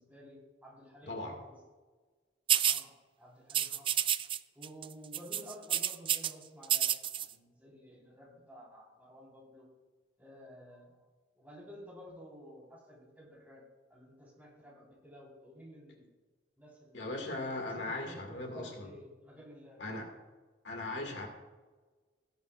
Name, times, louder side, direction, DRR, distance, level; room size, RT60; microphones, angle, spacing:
voice 1, 0.0-1.6 2.6-4.0 4.5-6.9 7.2-9.7 10.2-11.0 11.4-13.6 13.9-16.1 16.6-17.2 17.7-20.0, equal, 10° right, -4 dB, 3.9 m, -53 dB
voice 2, 1.0-1.4 16.9-18.9 19.8-20.1 20.6-21.3, left 2 dB, 80° left, 2 dB, 2.0 m, -38 dB
sound 1, 2.5-2.8 3.5-4.4 4.6-4.9 5.1-6.3 6.6-7.3, right 10 dB, 30° right, 0.3 m, -29 dB
17.0 x 10.5 x 2.4 m, 1.3 s
head